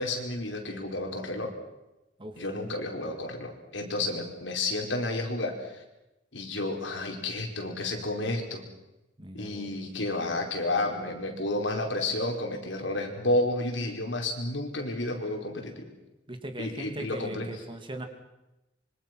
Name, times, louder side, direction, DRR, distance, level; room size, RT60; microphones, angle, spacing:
voice 1, 0.0-1.5 2.4-5.8 6.3-8.6 9.3-15.9 16.6-17.5, left 2 dB, 80° left, 2 dB, 4.7 m, -31 dB
voice 2, 9.2-9.7 16.3-18.1, right 1 dB, 25° right, 5 dB, 2.7 m, -39 dB
26.0 x 24.5 x 6.1 m, 0.96 s
head